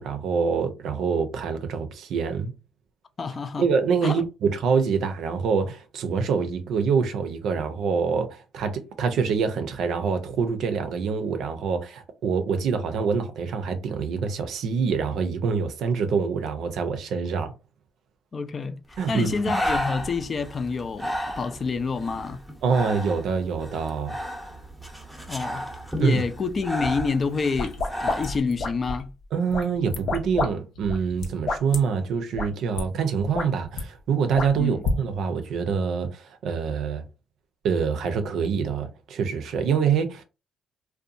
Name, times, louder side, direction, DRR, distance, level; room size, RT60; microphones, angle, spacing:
voice 1, 0.0-2.5 3.6-17.5 19.0-19.3 22.6-24.2 26.0-26.2 29.3-37.0 37.6-40.2, right 6 dB, 75° right, 0.5 m, -25 dB
voice 2, 3.2-3.6 4.0-4.2 18.3-22.4 25.3-25.6 25.9-29.1 34.5-34.8, left 4 dB, 40° left, 0.4 m, -28 dB
Breathing, 18.9-28.4, equal, ahead, 0.7 m, -33 dB
sound 1, 27.4-29.1 29.5-30.5 30.8-31.8 32.3-32.5 32.8-32.9 33.2-33.8 34.3-35.0, left 3 dB, 70° left, 0.7 m, -28 dB
2.7 x 2.2 x 2.5 m
cardioid pair, 90°, 0 cm